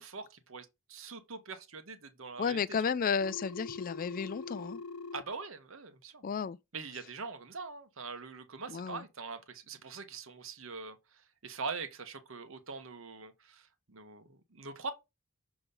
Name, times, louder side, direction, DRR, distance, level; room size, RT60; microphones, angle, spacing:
voice 1, 0.0-2.8 5.1-6.2 6.7-11.0 11.4-14.9, right 4 dB, 65° right, 1.0 m, -43 dB
voice 2, 2.4-4.8 6.2-6.6 8.7-9.0, left 6 dB, 40° left, 0.3 m, -32 dB
Telephone, 3.2-5.2, left 4 dB, 90° left, 0.7 m, -43 dB
6.7 x 3.0 x 5.3 m
head